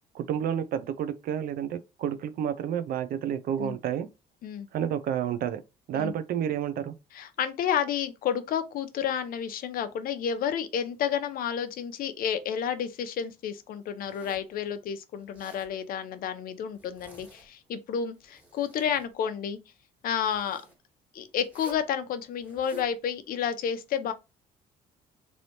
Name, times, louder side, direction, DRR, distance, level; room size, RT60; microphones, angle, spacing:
voice 1, 0.1-4.1 4.7-5.6 5.9-6.9, right 9 dB, 60° right, 0.5 m, -30 dB
voice 2, 7.1-19.6 20.0-20.6 21.1-24.1, left 8 dB, 60° left, 0.5 m, -30 dB
Zipper (clothing), 14.0-14.5 15.2-15.7 16.7-17.6 18.1-19.1 20.2-20.7 21.4-21.9 22.4-22.9, right 1 dB, 10° right, 1.5 m, -51 dB
3.2 x 2.7 x 2.8 m
cardioid pair, 110°, 17 cm